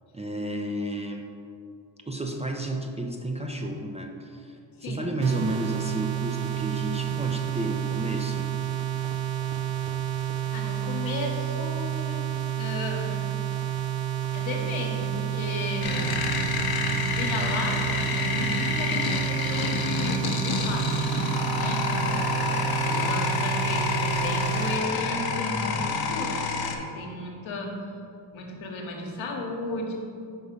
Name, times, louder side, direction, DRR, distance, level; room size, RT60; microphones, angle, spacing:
voice 1, 0.1-1.3 2.1-8.5, right 1 dB, 15° right, 2 dB, 0.4 m, -32 dB
voice 2, 4.8-5.1 10.5-12.3 12.6-13.2 14.3-16.1 17.1-21.1 21.5-21.8 22.9-27.8 28.3-29.9, left 2 dB, 75° left, 1 dB, 1.0 m, -34 dB
sound 1, 5.2-24.8, right 11 dB, 70° right, 0.6 m, -30 dB
sound 2, 15.8-26.8, left 4 dB, 50° left, 0.7 m, -28 dB
5.4 x 3.6 x 5.0 m, 2.5 s
cardioid pair, 70°, 47 cm